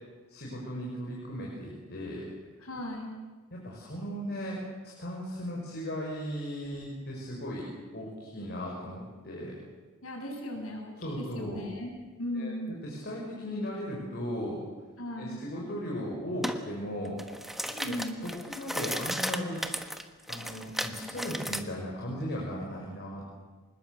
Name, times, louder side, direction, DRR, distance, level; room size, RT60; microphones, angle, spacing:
voice 1, 0.3-2.3 3.5-7.7 7.9-9.6 11.0-11.6 12.3-12.5 12.8-14.6 15.2-17.2 17.8-19.6 20.3-23.3, equal, 50° left, -2 dB, 5.7 m, -37 dB
voice 2, 2.6-3.2 10.0-11.9 12.2-12.8 15.0-15.4 17.7-18.2, left 1 dB, 85° left, 1 dB, 7.3 m, -37 dB
sound 1, 16.4-16.6 17.1-21.6, equal, ahead, 1.3 m, -35 dB
26.5 x 20.5 x 8.0 m, 1.3 s
head